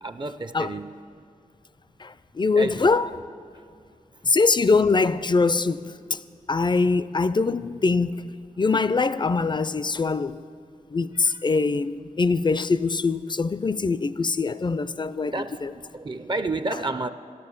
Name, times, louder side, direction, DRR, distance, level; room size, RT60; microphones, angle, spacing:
voice 1, 0.0-0.9 2.5-2.9 15.3-15.6 15.9-17.1, right 2 dB, 35° right, 0.5 m, -30 dB
voice 2, 2.0-3.1 4.2-6.2 6.5-10.4 10.9-15.7, left 4 dB, 35° left, 0.4 m, -23 dB
13.5 x 11.5 x 6.8 m
wide cardioid pair, 85°, 14 cm